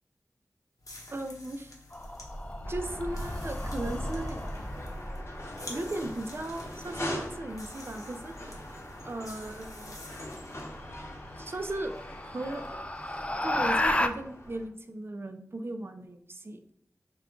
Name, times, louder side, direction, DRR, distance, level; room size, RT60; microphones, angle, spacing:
sound 1, 0.8-10.7, left 1 dB, 75° left, 0.9 m, -50 dB
voice 1, 1.1-1.7 2.7-4.4 5.7-8.3 9.0-10.0 11.3-11.9 12.2-12.6 13.4-16.7, right 2 dB, 40° right, 6 dB, 0.4 m, -36 dB
sound 2, 1.9-5.4 7.7-8.2 10.3-10.4 10.9-11.0 11.5-14.1, left 1 dB, 20° left, 0.4 m, -33 dB
sound 3, 2.6-14.7, left 1 dB, 50° left, 0.9 m, -43 dB
4.8 x 2.2 x 3.6 m, 0.69 s
wide cardioid pair, 45°, 6 cm